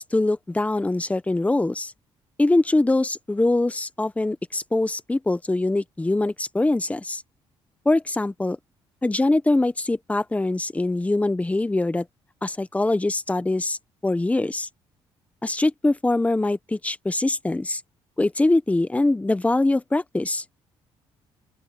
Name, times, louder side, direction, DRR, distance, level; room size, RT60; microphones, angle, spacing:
voice 1, 0.0-1.9 2.4-7.2 7.8-8.6 9.0-12.0 12.4-14.7 15.4-17.8 18.2-20.4, left 2 dB, 15° left, 1.1 m, -23 dB
open air
cardioid pair, 90°, 11 cm